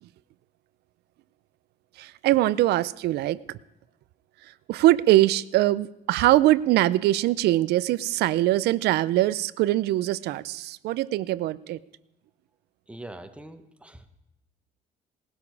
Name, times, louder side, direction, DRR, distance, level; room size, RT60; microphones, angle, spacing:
voice 1, 2.0-3.6 4.7-11.8, right 15 dB, 75° right, 18 dB, 0.5 m, -22 dB
voice 2, 12.9-14.0, right 1 dB, 5° right, 8 dB, 1.1 m, -43 dB
18.5 x 12.0 x 4.7 m, 0.88 s
cardioid pair, 110°, 17 cm